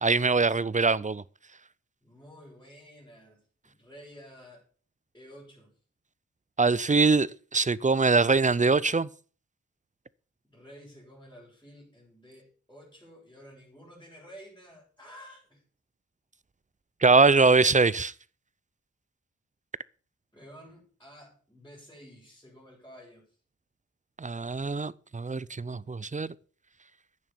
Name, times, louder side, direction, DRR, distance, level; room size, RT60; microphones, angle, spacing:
voice 1, 0.0-1.2 6.6-9.1 17.0-18.1 24.2-26.3, right 4 dB, 25° right, 0.5 m, -23 dB
voice 2, 2.0-4.6 5.1-5.7 10.4-15.6 20.3-23.4, equal, 10° left, 7.6 m, -51 dB
10.5 x 9.2 x 7.1 m
wide cardioid pair, 85°, 30 cm